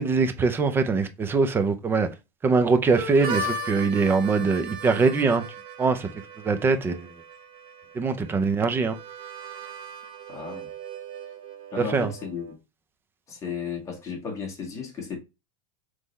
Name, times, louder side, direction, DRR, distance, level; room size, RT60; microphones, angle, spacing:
voice 1, 0.0-2.1 2.4-5.4 5.8-6.1 6.4-7.1 8.0-9.0 11.9-12.1, right 4 dB, 10° right, 0.4 m, -22 dB
Harmonica, 2.9-12.5, right 3 dB, 30° right, 0.8 m, -37 dB
voice 2, 10.3-10.7 11.7-12.6 13.3-15.2, left 6 dB, 15° left, 1.4 m, -34 dB
3.7 x 3.2 x 4.0 m
supercardioid pair, 155°, 18 cm